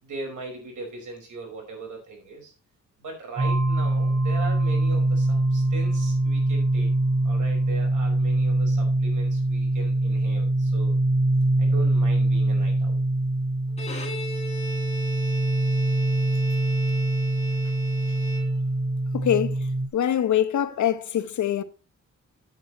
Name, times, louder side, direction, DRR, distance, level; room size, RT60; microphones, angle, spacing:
voice 1, 0.0-2.5 3.0-6.9 7.2-11.0 11.6-13.0, right 3 dB, 90° right, 5.1 m, -39 dB
sound 1, 3.4-19.9, right 2 dB, 50° right, 1.8 m, -23 dB
Bowed string instrument, 13.7-19.0, right 1 dB, 20° left, 2.4 m, -37 dB
voice 2, 19.1-21.6, left 10 dB, 75° left, 1.0 m, -24 dB
9.2 x 8.3 x 4.1 m
wide cardioid pair, 165°, 29 cm